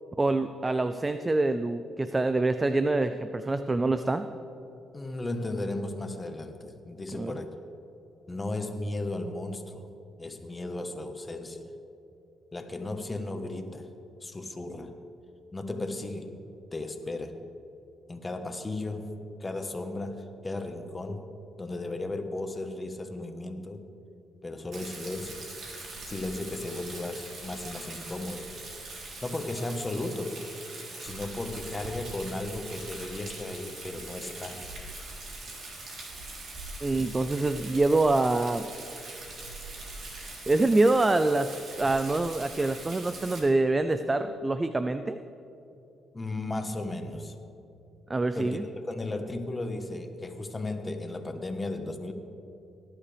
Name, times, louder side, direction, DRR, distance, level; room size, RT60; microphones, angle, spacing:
voice 1, 0.2-4.3 7.1-7.4 36.8-38.6 40.5-45.2 48.1-48.6, right 2 dB, 20° right, 10 dB, 0.4 m, -25 dB
voice 2, 4.9-7.5 8.3-9.9 10.2-11.6 12.5-13.9 14.2-14.9 15.5-16.3 16.7-17.3 18.1-19.1 19.4-21.3 21.6-23.8 24.4-25.4 26.0-28.5 29.2-30.4 31.0-34.6 46.1-47.3 48.3-52.1, left 2 dB, 20° left, 6 dB, 1.2 m, -35 dB
Rain, 24.7-43.4, right 2 dB, 60° right, 3.5 m, -42 dB
18.5 x 11.0 x 3.4 m, 2.8 s
cardioid pair, 90°, 0 cm